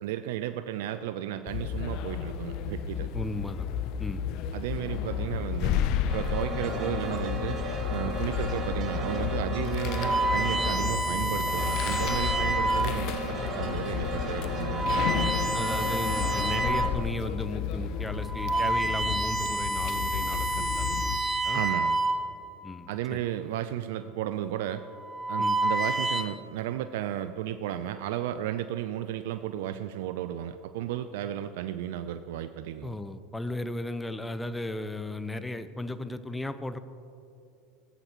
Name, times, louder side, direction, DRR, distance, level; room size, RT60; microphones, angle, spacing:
voice 1, 0.0-3.1 4.5-5.8 6.0-7.6 7.9-15.4 21.5-22.0 22.9-24.8 25.3-33.0, right 12 dB, 70° right, 10 dB, 0.3 m, -34 dB
sound 1, 1.5-21.2, left 8 dB, 60° left, 0.5 m, -32 dB
voice 2, 3.1-3.7 4.0-4.2 15.5-21.6 22.6-23.2 25.4-25.6 32.8-36.8, left 1 dB, 10° left, 11 dB, 0.6 m, -36 dB
sound 2, 6.1-16.9, right 1 dB, 40° right, 2.4 m, -35 dB
sound 3, 9.7-13.1 13.8-14.0 14.6-17.0 17.5-17.6 18.1-22.6 23.6-24.0 24.9-26.2, right 2 dB, 20° right, 1.4 m, -29 dB
16.0 x 8.0 x 3.0 m, 2.6 s
hypercardioid pair, 85°, 0 cm